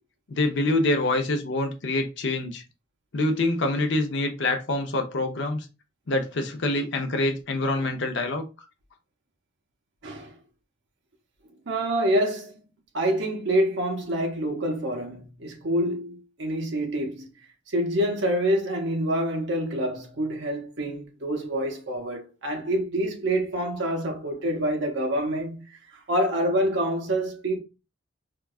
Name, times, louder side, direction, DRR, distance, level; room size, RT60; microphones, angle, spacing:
voice 1, 0.3-2.6 3.1-5.7 6.1-8.4, left 2 dB, 65° left, 0.6 m, -25 dB
voice 2, 10.0-10.3 11.7-12.6 12.9-17.3 17.7-25.6 26.1-27.6, right 1 dB, 65° right, 0.8 m, -26 dB
4.6 x 2.3 x 2.3 m
head